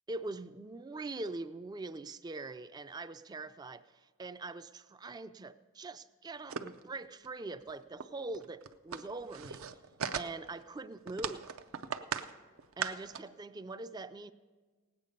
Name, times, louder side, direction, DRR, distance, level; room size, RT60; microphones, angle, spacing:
voice 1, 0.1-9.7 10.1-11.6 12.8-14.3, right 2 dB, 20° right, 13 dB, 0.3 m, -43 dB
sound 1, 6.5-6.8 7.2-7.3 7.6-7.7 8.0-8.1 8.3-10.6 11.1-12.3 12.6-13.2, right 7 dB, 70° right, 0.5 m, -38 dB
18.0 x 8.3 x 5.2 m, 1.4 s
head